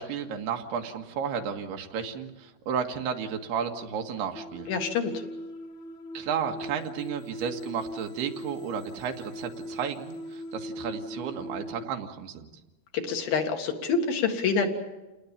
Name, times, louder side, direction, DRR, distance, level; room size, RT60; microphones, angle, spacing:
voice 1, 0.0-4.7 6.2-12.5, right 7 dB, 90° right, 4 dB, 3.6 m, -33 dB
sound 1, 4.4-11.9, equal, 50° left, 2.7 m, -40 dB
voice 2, 4.7-5.2 12.9-14.7, left 5 dB, 70° left, 3 dB, 3.7 m, -27 dB
29.0 x 19.5 x 7.3 m, 1.1 s
omnidirectional pair, 4.5 m